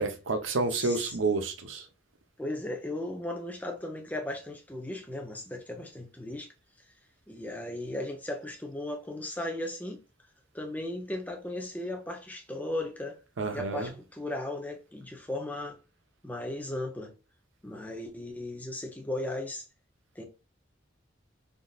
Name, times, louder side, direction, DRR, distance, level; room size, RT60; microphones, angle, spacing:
voice 1, 0.0-1.9 13.4-13.9, right 3 dB, 80° right, 0.7 m, -29 dB
voice 2, 0.7-1.2 2.4-6.5 7.3-10.0 10.5-13.2 13.5-15.8 16.2-17.1 17.6-19.6 20.2-20.3, left 1 dB, 10° left, 0.6 m, -36 dB
3.6 x 2.5 x 2.3 m
head